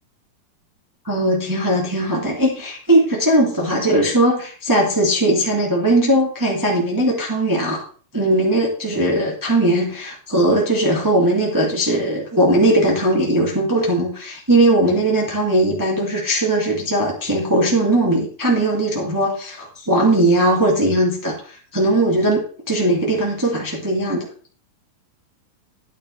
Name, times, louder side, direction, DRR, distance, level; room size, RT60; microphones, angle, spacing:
voice 1, 1.0-7.8 8.1-24.3, right 1 dB, 25° right, -2 dB, 0.4 m, -19 dB
10.5 x 9.9 x 3.3 m, 0.43 s
omnidirectional pair, 4.7 m